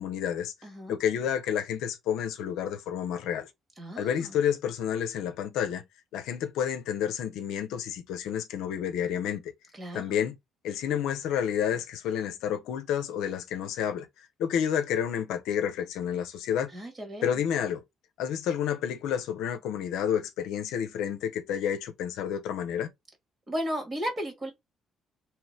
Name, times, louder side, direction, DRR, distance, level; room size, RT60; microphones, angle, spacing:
voice 1, 0.0-0.5 0.9-3.5 4.0-5.8 6.1-9.4 9.9-10.4 10.6-14.1 14.4-16.7 17.2-17.8 18.2-22.9, left 9 dB, 80° left, 0.5 m, -30 dB
voice 2, 0.6-1.0 3.8-4.4 9.7-10.2 16.7-17.4 23.5-24.5, equal, 30° right, 1.6 m, -35 dB
2.9 x 2.1 x 3.1 m
supercardioid pair, 70°, 0 cm